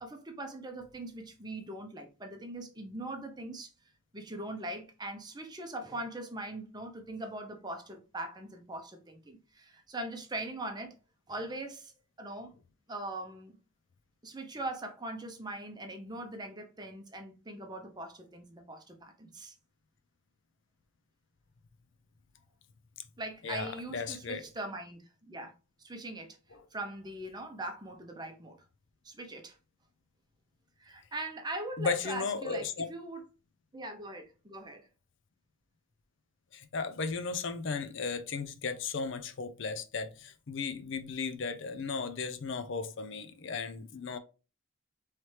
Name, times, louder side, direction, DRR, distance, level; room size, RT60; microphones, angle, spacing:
voice 1, 0.0-3.7 4.1-10.9 11.3-11.9 12.2-12.5 12.9-13.6 14.2-19.5 23.2-25.5 25.8-26.4 26.7-28.6 29.0-29.6 30.8-33.2 33.7-34.9, right 1 dB, 20° right, 0.7 m, -41 dB
voice 2, 23.4-24.4 31.8-32.9 36.5-44.2, left 5 dB, 60° left, 0.5 m, -35 dB
4.4 x 3.2 x 3.2 m
head